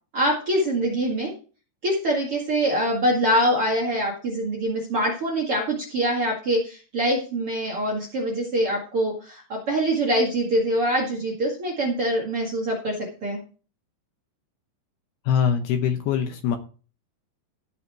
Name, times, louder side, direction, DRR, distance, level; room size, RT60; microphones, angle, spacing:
voice 1, 0.1-1.3 1.8-12.9 13.2-13.4, right 1 dB, 45° right, 0 dB, 1.9 m, -24 dB
voice 2, 15.3-16.6, left 8 dB, 75° left, 6 dB, 2.6 m, -23 dB
15.5 x 5.8 x 4.6 m, 0.37 s
omnidirectional pair, 5.4 m